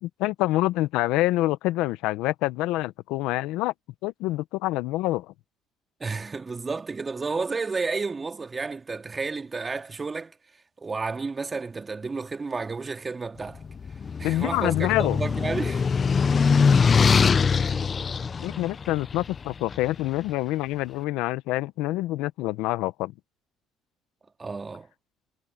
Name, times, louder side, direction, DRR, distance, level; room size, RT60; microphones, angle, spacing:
voice 1, 0.0-3.7 4.0-5.3 14.2-15.2 18.4-23.1, left 17 dB, 80° left, 0.9 m, -26 dB
voice 2, 6.0-10.3 10.8-13.6 14.2-15.9 24.4-24.9, right 4 dB, 25° right, 2.6 m, -31 dB
sound 1, 13.6-19.9, left 5 dB, 35° left, 0.7 m, -22 dB
supercardioid pair, 80°, 0 cm